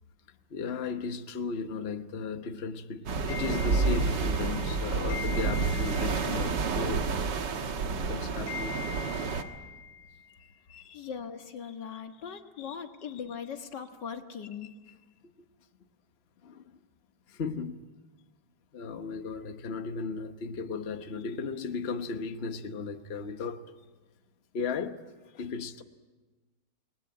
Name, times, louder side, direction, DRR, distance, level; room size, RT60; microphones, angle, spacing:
voice 1, 0.5-7.3 8.1-11.1 11.9-12.8 14.9-15.0 16.4-16.8 17.3-17.8 18.7-23.6 24.5-25.0 25.3-25.8, left 5 dB, 40° left, 1.3 m, -36 dB
sound 1, 3.1-9.4, right 4 dB, 90° right, 2.1 m, -29 dB
voice 2, 10.9-14.7, left 7 dB, 90° left, 2.2 m, -40 dB
29.5 x 19.5 x 8.8 m
omnidirectional pair, 1.8 m